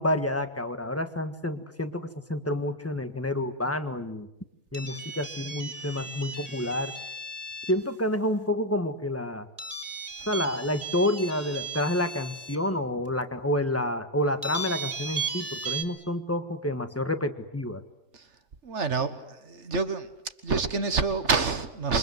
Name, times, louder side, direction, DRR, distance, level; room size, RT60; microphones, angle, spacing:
voice 1, 0.0-4.3 4.7-6.9 7.7-9.5 10.3-17.8, left 1 dB, 10° left, 9 dB, 1.6 m, -29 dB
sound 1, 4.7-7.8 9.6-12.6 13.2-13.3 14.4-15.8, right 3 dB, 30° right, 3.2 m, -36 dB
voice 2, 18.6-20.1 20.4-22.0, right 4 dB, 65° right, 10 dB, 1.8 m, -27 dB
28.0 x 25.0 x 8.0 m, 0.87 s
omnidirectional pair, 1.3 m